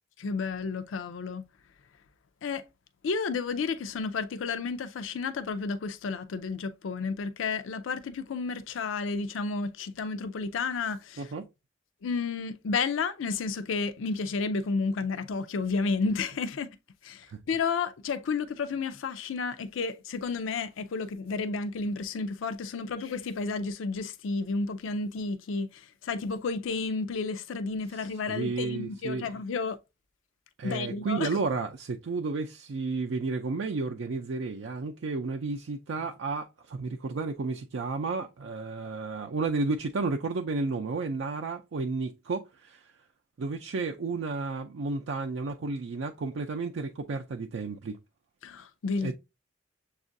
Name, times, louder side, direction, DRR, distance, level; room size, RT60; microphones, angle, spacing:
voice 1, 0.2-1.4 2.4-2.6 3.0-11.3 12.0-16.7 17.0-29.8 30.6-31.3 48.4-49.1, left 4 dB, 85° left, 0.4 m, -31 dB
voice 2, 11.2-11.5 17.3-17.4 28.3-29.3 30.6-42.9 43.4-48.0 49.0-49.1, right 4 dB, 70° right, 0.4 m, -32 dB
7.1 x 2.4 x 2.5 m
head